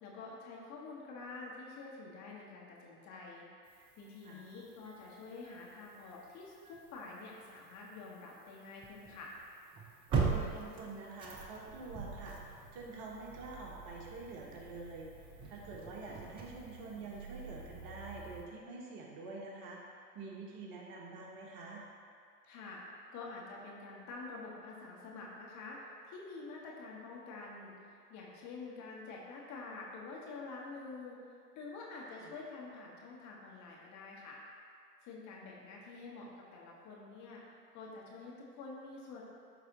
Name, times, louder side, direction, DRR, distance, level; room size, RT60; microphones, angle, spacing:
voice 1, 0.0-3.5 4.0-9.3 22.4-22.8 23.1-27.7 28.1-31.2 31.5-34.4 35.0-37.4 37.7-39.2, left 3 dB, 35° left, -3 dB, 1.7 m, -48 dB
sound 1, 3.7-18.4, right 5 dB, 10° right, 0.3 m, -43 dB
voice 2, 10.2-15.1 15.5-21.8 32.2-32.3, right 3 dB, 40° right, -3 dB, 1.6 m, -47 dB
12.0 x 4.1 x 3.9 m, 2.3 s
hypercardioid pair, 105°, 48 cm